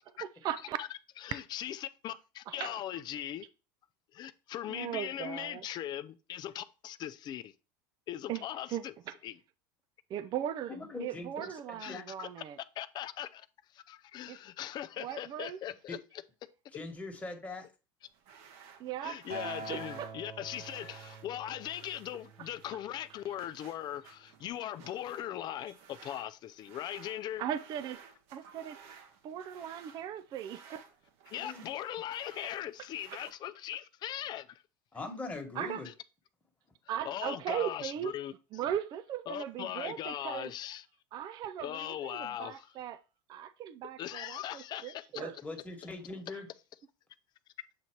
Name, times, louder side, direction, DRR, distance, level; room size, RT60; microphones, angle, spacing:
voice 1, 0.2-0.8 2.5-2.8 4.7-5.7 8.3-8.4 8.7-9.2 10.1-12.6 14.3-14.4 15.0-15.6 18.8-20.1 27.4-28.0 28.3-28.8 29.2-30.8 33.1-33.2 35.6-35.8 36.9-38.1 38.5-40.5 41.1-43.0 43.3-45.4, right 10 dB, 40° right, 0.4 m, -38 dB
voice 2, 1.2-3.5 4.1-7.5 8.1-8.9 9.2-9.3 11.8-12.3 12.8-13.5 13.7-16.0 19.0-27.4 31.3-34.6 37.0-38.3 39.3-40.8 41.6-42.7 44.0-45.1, left 12 dB, 40° left, 0.5 m, -39 dB
voice 3, 10.7-12.0 15.9-16.0 16.7-17.7 31.4-31.7 34.9-35.9 45.1-46.5, left 3 dB, 15° left, 1.4 m, -41 dB
sound 1, 18.0-33.3, right 6 dB, 60° right, 0.9 m, -56 dB
Acoustic guitar, 19.3-23.6 24.4-24.5, right 3 dB, 85° right, 3.7 m, -46 dB
7.6 x 2.8 x 4.5 m
supercardioid pair, 100°, 11 cm